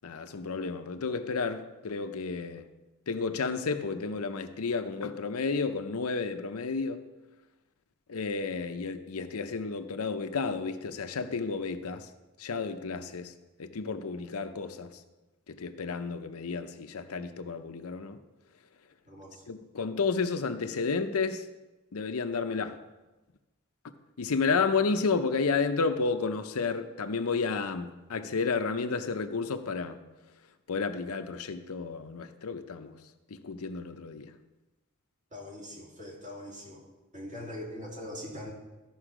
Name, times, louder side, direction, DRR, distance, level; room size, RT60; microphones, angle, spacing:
voice 1, 0.0-2.6 3.1-7.0 8.1-12.1 12.4-13.3 13.6-14.9 15.5-18.2 19.5-21.4 21.9-22.7 24.2-30.0 30.7-33.0 33.4-34.3, left 4 dB, 85° left, 0.7 m, -31 dB
voice 2, 19.1-19.4 35.3-36.9 37.1-38.5, left 1 dB, 35° right, 2.3 m, -42 dB
13.5 x 5.5 x 4.9 m
head